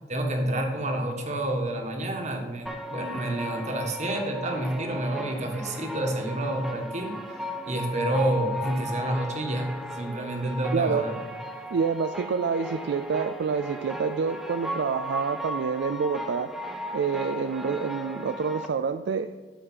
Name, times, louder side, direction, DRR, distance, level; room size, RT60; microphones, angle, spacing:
voice 1, 0.1-7.1 7.6-11.2, right 1 dB, 40° right, 3 dB, 1.5 m, -29 dB
sound 1, 2.7-18.7, equal, ahead, 0.7 m, -36 dB
voice 2, 10.7-11.0 11.7-16.5 16.9-19.3, right 5 dB, 65° right, 9 dB, 0.4 m, -27 dB
12.5 x 5.1 x 5.6 m, 1.4 s
head